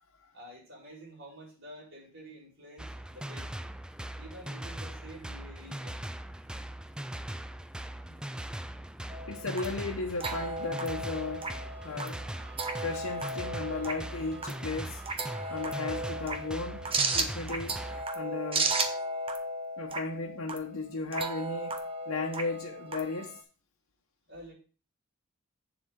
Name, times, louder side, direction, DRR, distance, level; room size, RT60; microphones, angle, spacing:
voice 1, 0.3-3.5 4.1-6.1 24.3-24.5, right 1 dB, 65° right, 4.8 m, -49 dB
sound 1, 2.8-18.1, right 1 dB, 5° right, 0.4 m, -40 dB
sound 2, 9.1-23.4, right 3 dB, 25° right, 1.0 m, -35 dB
voice 2, 9.3-11.5 11.8-12.2 12.8-15.0 15.5-18.7 19.8-21.8 22.1-23.4, left 3 dB, 80° left, 1.0 m, -35 dB
8.0 x 7.2 x 3.7 m
head